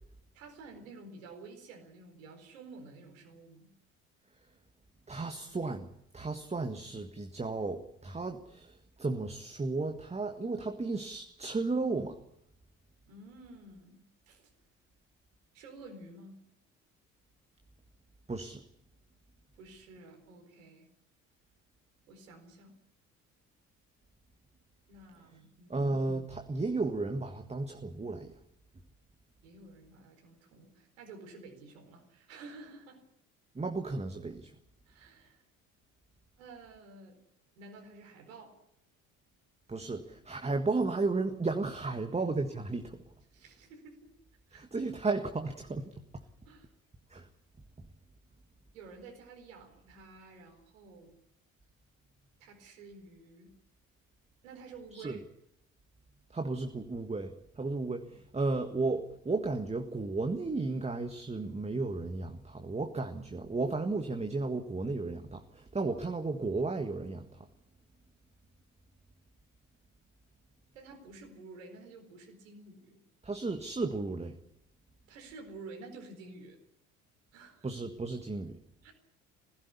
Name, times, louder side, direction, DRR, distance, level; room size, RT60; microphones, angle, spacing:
voice 1, 0.3-3.7 13.1-14.5 15.5-16.4 19.6-20.9 22.1-22.7 24.9-25.9 29.4-33.0 34.9-35.4 36.4-37.2 37.6-38.6 43.3-44.1 44.5-44.8 46.4-46.7 48.7-51.1 52.4-53.5 54.4-55.2 70.7-73.0 75.1-76.6 77.3-77.7 78.8-78.9, right 3 dB, 70° right, 2 dB, 4.5 m, -51 dB
voice 2, 5.1-5.9 6.1-12.2 18.3-18.6 25.7-28.3 33.5-34.5 39.7-43.0 44.5-46.2 47.1-47.3 54.9-55.2 56.3-67.4 73.2-74.4 77.6-78.6, right 3 dB, 15° right, 6 dB, 1.7 m, -34 dB
20.5 x 16.5 x 9.9 m, 0.76 s
figure-of-eight pair, 55°, 41 cm